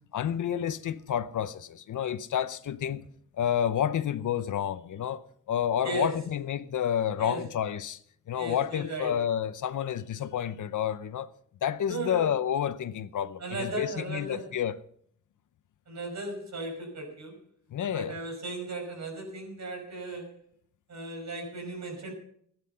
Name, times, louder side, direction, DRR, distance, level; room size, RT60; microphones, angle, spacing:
voice 1, 0.1-3.1 3.4-8.0 8.3-11.3 11.6-14.8 17.7-18.2, left 9 dB, 65° left, 0.7 m, -30 dB
voice 2, 8.3-9.1 11.9-12.3 13.4-14.5 15.9-17.4 17.9-20.3 20.9-22.1, right 2 dB, 55° right, 5.7 m, -36 dB
16.5 x 9.9 x 5.6 m
wide cardioid pair, 155°, 33 cm